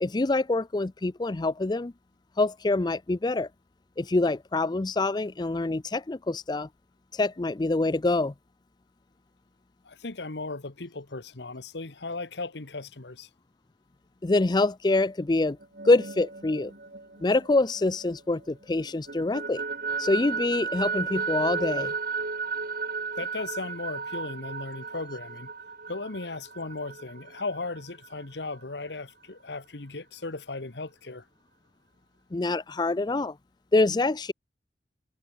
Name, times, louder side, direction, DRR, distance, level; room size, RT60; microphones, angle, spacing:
voice 1, 0.0-1.9 2.4-3.5 4.0-6.7 7.1-8.3 14.2-15.6 15.8-16.7 17.2-19.6 20.0-21.9 32.3-33.4 33.7-34.3, left 2 dB, 25° left, 0.5 m, -25 dB
voice 2, 9.8-13.3 23.2-25.5 25.9-31.2, left 3 dB, 75° left, 1.4 m, -36 dB
sound 1, 15.6-18.5 18.8-28.2, right 5 dB, 55° right, 2.8 m, -34 dB
head